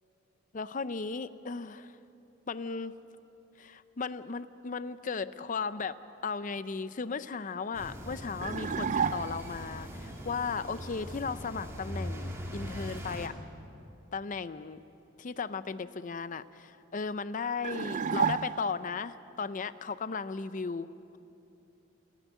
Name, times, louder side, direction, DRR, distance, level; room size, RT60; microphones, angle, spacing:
voice 1, 0.5-1.9 2.5-2.9 3.6-6.0 6.2-13.3 14.1-14.8 15.2-21.2, left 5 dB, 40° left, 14 dB, 0.5 m, -36 dB
sound 1, 7.7-13.3, equal, 15° right, 2.4 m, -41 dB
sound 2, 8.4-9.6 17.6-18.9, right 6 dB, 40° right, 0.4 m, -31 dB
29.0 x 9.9 x 9.4 m, 2.8 s
head